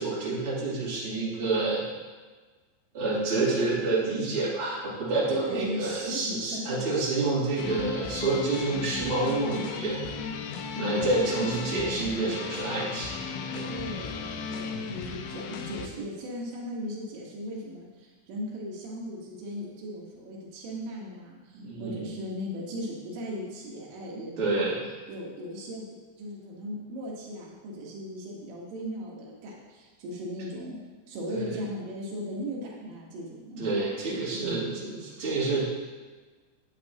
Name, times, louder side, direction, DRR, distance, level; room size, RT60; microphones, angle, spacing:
voice 1, 0.0-1.8 2.9-10.0 10.8-13.1 13.5-13.7 21.5-22.1 24.4-24.7 31.3-31.6 33.6-35.7, right 3 dB, 35° right, -9 dB, 3.1 m, -28 dB
voice 2, 5.3-6.8 7.6-7.8 10.7-11.5 13.7-24.8 25.1-25.9 26.2-30.8 31.1-33.8 34.3-34.8, equal, 85° right, -3 dB, 3.8 m, -37 dB
sound 1, 7.6-15.9, left 5 dB, 85° left, 3.1 m, -36 dB
11.5 x 8.5 x 2.9 m, 1.4 s
omnidirectional pair, 5.2 m